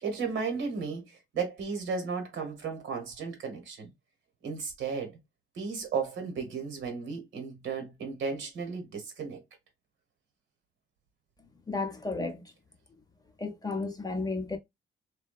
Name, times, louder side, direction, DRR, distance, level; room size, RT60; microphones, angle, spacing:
voice 1, 0.0-3.9 4.4-5.1 5.5-9.4, right 5 dB, 75° right, 1.1 m, -34 dB
voice 2, 11.7-12.4 13.4-14.6, left 3 dB, 20° left, 0.6 m, -33 dB
2.7 x 2.2 x 2.3 m
cardioid pair, 90°, 20 cm